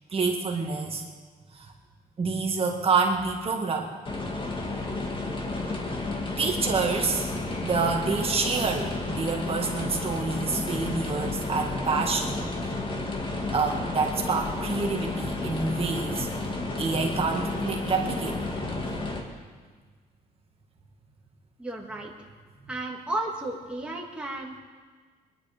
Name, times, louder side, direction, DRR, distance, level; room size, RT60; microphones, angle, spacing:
voice 1, 0.1-1.0 1.5-1.7 2.2-3.9 6.4-7.3 7.6-12.7 13.5-16.3 16.8-18.4, right 4 dB, 35° right, 1 dB, 1.9 m, -27 dB
sound 1, 4.0-19.2, left 2 dB, 30° left, 2.2 m, -32 dB
voice 2, 21.6-22.1 22.7-24.6, right 2 dB, 5° right, -2 dB, 2.0 m, -33 dB
22.5 x 11.0 x 5.1 m, 1.5 s
cardioid pair, 125°, 16 cm